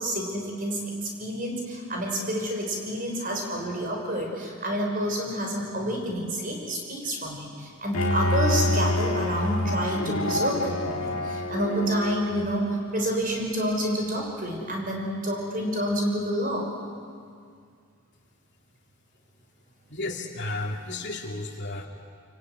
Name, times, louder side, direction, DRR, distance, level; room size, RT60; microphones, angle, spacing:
voice 1, 0.0-16.7, equal, 40° right, 1 dB, 5.7 m, -29 dB
Bowed string instrument, 7.9-12.7, left 1 dB, 75° left, 1.8 m, -27 dB
voice 2, 19.9-21.9, left 2 dB, 55° left, 1 dB, 2.6 m, -33 dB
26.5 x 23.5 x 9.6 m, 2.2 s
head